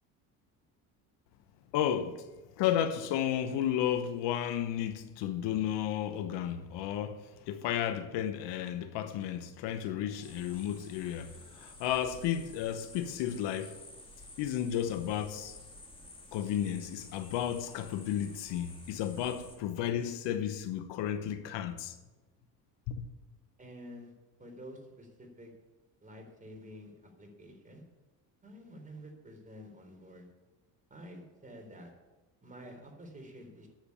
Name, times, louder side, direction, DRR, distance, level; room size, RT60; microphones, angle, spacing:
voice 1, 1.7-2.3 2.6-13.8 14.4-15.6 16.3-22.0 22.9-23.1, left 10 dB, 80° left, 1.0 m, -33 dB
sound 1, 10.2-19.6, left 2 dB, 10° left, 2.3 m, -52 dB
voice 2, 23.6-24.1 24.4-25.5 26.0-27.8 28.4-30.3 30.9-31.9 32.4-33.7, equal, 20° right, 3.9 m, -49 dB
10.5 x 7.2 x 8.5 m
supercardioid pair, 90°, 42 cm